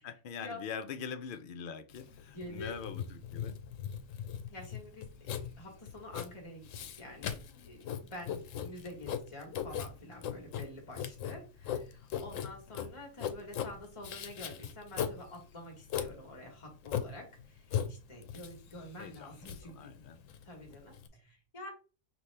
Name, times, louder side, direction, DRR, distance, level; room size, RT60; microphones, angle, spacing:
voice 1, 0.0-3.6 19.0-19.3 19.6-20.2, left 6 dB, 60° left, 0.5 m, -43 dB
Writing, 1.9-21.1, left 8 dB, 80° left, 1.0 m, -39 dB
voice 2, 2.3-2.8 4.5-6.7 7.0-21.7, left 1 dB, 25° left, 1.2 m, -48 dB
5.6 x 2.6 x 3.2 m
omnidirectional pair, 1.4 m